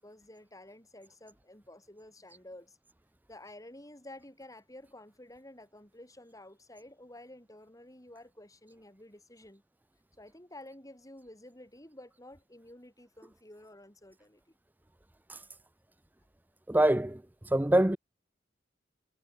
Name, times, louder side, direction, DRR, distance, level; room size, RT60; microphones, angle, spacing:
voice 1, 0.0-2.8 3.3-9.6 10.2-14.4, left 1 dB, 20° left, 7.7 m, -51 dB
voice 2, 16.7-17.2 17.5-18.0, right 1 dB, 10° right, 0.6 m, -24 dB
head